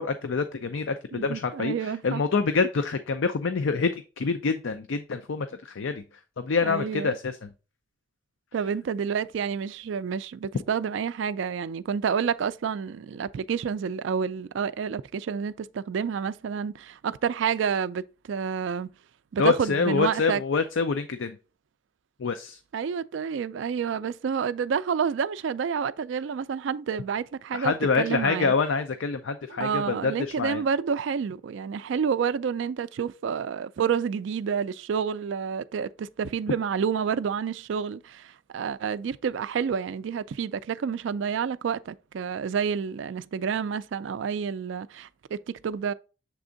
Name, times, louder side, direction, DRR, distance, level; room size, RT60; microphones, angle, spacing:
voice 1, 0.0-6.0 6.4-7.5 19.4-21.4 22.2-22.6 27.5-30.6, left 4 dB, 70° left, 0.5 m, -26 dB
voice 2, 1.1-2.2 6.6-7.2 8.5-18.9 19.3-20.4 22.7-28.5 29.5-45.9, right 6 dB, 65° right, 0.3 m, -29 dB
7.4 x 3.5 x 3.9 m
head